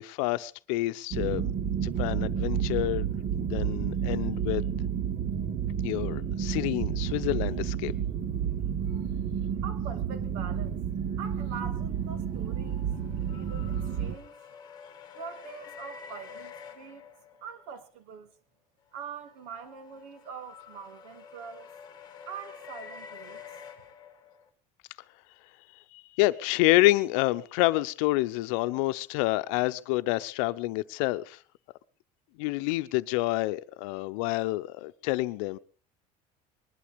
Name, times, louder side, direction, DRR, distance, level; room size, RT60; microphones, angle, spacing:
voice 1, 0.0-1.5 1.8-3.0 3.4-4.6 5.8-7.9 25.9-31.4 32.4-35.6, left 19 dB, 85° left, 0.8 m, -28 dB
sound 1, 1.1-14.1, right 8 dB, 30° right, 1.0 m, -30 dB
voice 2, 8.8-9.1 9.6-10.8 11.2-12.9 13.2-14.4 15.1-17.1 17.4-18.3 18.9-21.7 22.3-23.4, right 6 dB, 85° right, 2.8 m, -43 dB
sound 2, 12.2-17.8 19.2-24.5, left 7 dB, 25° left, 2.1 m, -48 dB
21.0 x 12.0 x 5.2 m
cardioid pair, 175°, 17 cm